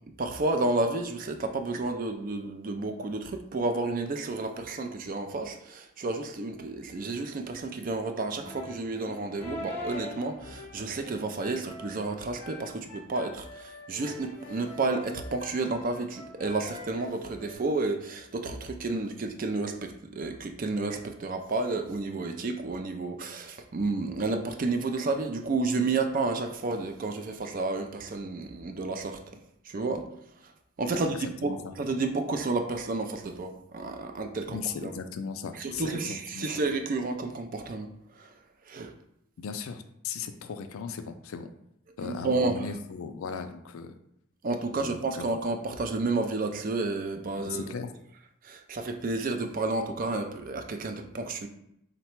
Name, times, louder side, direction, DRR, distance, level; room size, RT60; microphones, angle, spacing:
voice 1, 0.2-29.2 29.6-30.1 30.8-34.9 35.6-37.9 38.2-38.3 38.7-38.9 42.0-42.7 44.4-47.7 48.4-51.5, right 3 dB, 40° right, 6 dB, 0.3 m, -31 dB
sound 1, 8.4-17.5, left 2 dB, 10° left, 0.6 m, -43 dB
voice 2, 31.0-31.7 34.5-36.6 39.4-41.5 42.0-44.0 44.7-45.3 47.4-47.9, left 5 dB, 75° left, 8 dB, 0.4 m, -37 dB
3.9 x 2.2 x 4.4 m, 0.78 s
head